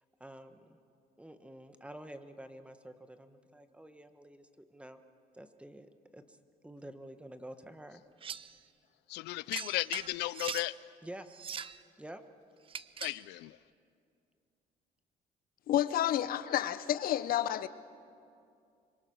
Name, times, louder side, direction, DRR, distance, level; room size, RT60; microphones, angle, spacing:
voice 1, 0.2-0.8 1.2-5.0 5.3-6.4 6.6-8.0 11.0-11.3 12.0-12.2, right 1 dB, 5° right, 1.3 m, -49 dB
sound 1, 8.2-8.5 9.5-10.7 11.3-11.8 12.7-13.2, right 7 dB, 30° right, 0.6 m, -41 dB
voice 2, 9.1-10.8 13.0-13.6, left 19 dB, 85° left, 0.5 m, -35 dB
voice 3, 15.7-17.7, left 12 dB, 60° left, 0.7 m, -30 dB
25.0 x 22.5 x 6.4 m
cardioid pair, 110°, 17 cm